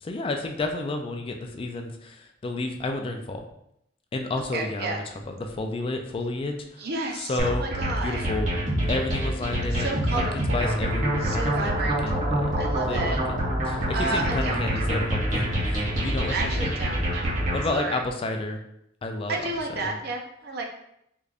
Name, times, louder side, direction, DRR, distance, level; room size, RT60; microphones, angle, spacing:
voice 1, 0.0-3.4 4.1-7.6 8.0-8.5 8.9-12.5 12.8-16.8 17.5-18.6 19.0-20.0, left 2 dB, 30° left, 4 dB, 0.3 m, -31 dB
voice 2, 4.5-5.0 6.8-8.3 9.7-10.8 11.2-12.0 12.6-13.2 13.9-14.7 16.3-17.3 17.7-18.0 19.3-20.7, right 3 dB, 60° right, 2 dB, 0.6 m, -31 dB
sound 1, 7.4-17.7, equal, 45° right, 1.2 m, -26 dB
3.7 x 3.3 x 2.4 m, 0.76 s
head